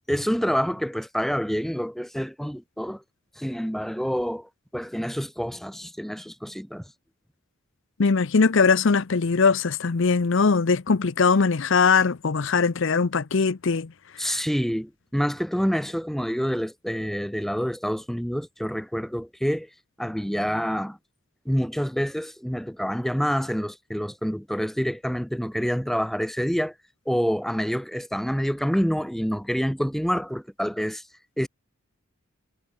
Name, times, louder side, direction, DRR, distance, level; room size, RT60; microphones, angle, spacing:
voice 1, 0.1-3.0 3.4-6.8 14.2-19.7 20.0-21.0 21.4-26.7 27.1-31.0 31.4-31.5, equal, ahead, 1.2 m, -27 dB
voice 2, 8.0-13.9 14.2-14.3, left 5 dB, 60° left, 0.7 m, -21 dB
head